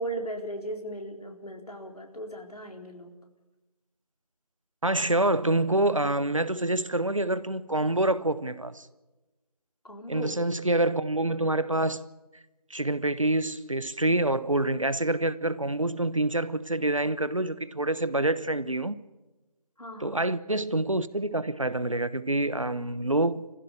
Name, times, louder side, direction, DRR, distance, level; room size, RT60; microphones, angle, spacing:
voice 1, 0.0-3.1 9.8-10.3 19.8-20.2, right 1 dB, 70° left, 4.2 m, -37 dB
voice 2, 4.8-8.9 10.1-12.0 12.7-19.0 20.0-23.4, right 2 dB, 55° right, 1.0 m, -26 dB
24.0 x 15.5 x 8.2 m
figure-of-eight pair, 180°, 20 cm